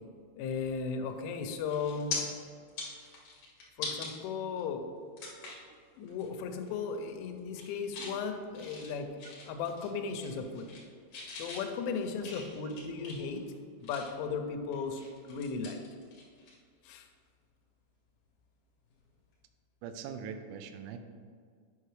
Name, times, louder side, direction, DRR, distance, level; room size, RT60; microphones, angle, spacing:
voice 1, 0.4-2.2 3.8-4.9 6.0-9.1 9.4-10.7 11.4-13.4 13.8-15.8 16.8-17.1, left 5 dB, 90° left, 6 dB, 3.1 m, -36 dB
sound 1, 1.1-1.3 1.7-2.2 2.6-4.1 4.6-4.7 5.2-5.7 6.1-6.3 6.6-7.0 7.4-8.2 8.5-9.9 10.1-10.9 11.1-14.3 14.7-16.5 16.8-17.0 18.9-19.1, left 4 dB, 65° left, 1.7 m, -42 dB
voice 2, 19.8-21.0, right 7 dB, 85° right, 8 dB, 2.9 m, -42 dB
9.6 x 5.7 x 3.2 m, 2.1 s
omnidirectional pair, 5.5 m